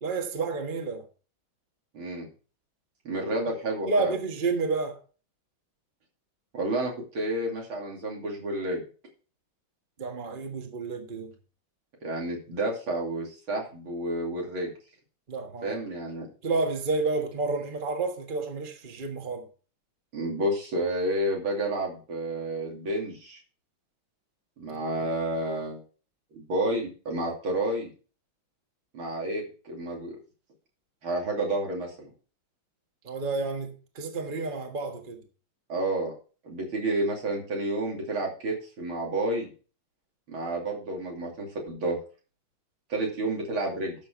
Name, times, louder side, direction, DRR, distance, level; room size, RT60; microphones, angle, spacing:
voice 1, 0.0-1.0 3.9-5.0 10.0-11.3 15.3-15.8 16.4-19.5 24.7-25.1 33.0-35.2, right 3 dB, 25° right, 1.5 m, -30 dB
voice 2, 1.9-2.3 3.1-4.1 6.5-8.8 12.0-14.7 15.6-16.3 20.1-23.4 24.6-25.8 26.3-27.9 28.9-30.2 31.0-32.1 35.7-36.1 36.4-39.5 40.3-42.0 42.9-44.0, right 1 dB, 85° right, 3.5 m, -30 dB
10.5 x 6.9 x 4.5 m
omnidirectional pair, 2.2 m